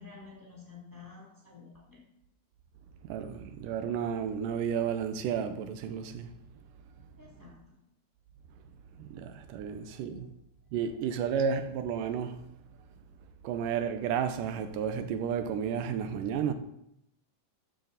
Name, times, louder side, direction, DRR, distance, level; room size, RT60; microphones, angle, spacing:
voice 1, 0.0-2.0 7.2-7.8 9.9-10.3, left 5 dB, 5° left, 1.9 m, -51 dB
voice 2, 3.1-6.3 9.0-10.3 10.7-12.4 13.4-16.5, right 7 dB, 90° right, 2.3 m, -32 dB
13.5 x 6.4 x 4.0 m
omnidirectional pair, 3.7 m